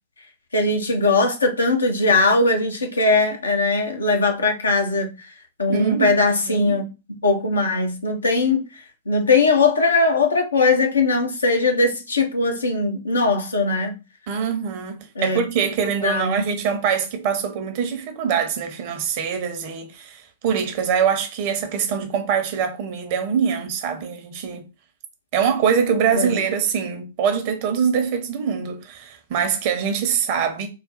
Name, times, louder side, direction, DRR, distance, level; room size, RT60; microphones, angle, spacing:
voice 1, 0.5-5.1 5.6-6.8 7.2-8.6 9.1-14.0 15.2-15.4 16.0-16.4 26.1-26.3, left 3 dB, 70° left, 0.9 m, -20 dB
voice 2, 5.7-6.1 6.5-6.8 14.3-24.7 25.3-30.7, right 7 dB, 40° right, 0.8 m, -23 dB
4.0 x 2.1 x 4.1 m
figure-of-eight pair, 105°, 0 cm